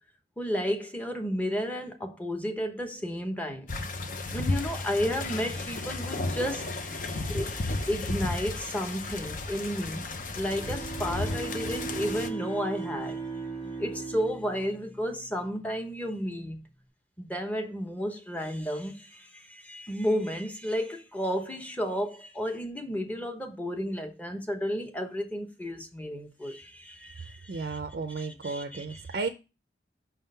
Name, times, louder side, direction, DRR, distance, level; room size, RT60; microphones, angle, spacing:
voice 1, 0.4-3.7 4.3-10.1 10.4-13.2 13.8-16.6 17.2-27.8 28.2-28.8, equal, 10° left, 0.8 m, -32 dB
sound 1, 3.7-12.3, left 2 dB, 45° left, 0.6 m, -33 dB
Bowed string instrument, 10.3-15.9, right 4 dB, 25° left, 1.5 m, -38 dB
voice 2, 27.2-29.3, right 4 dB, 60° right, 0.4 m, -34 dB
5.7 x 3.7 x 5.4 m
head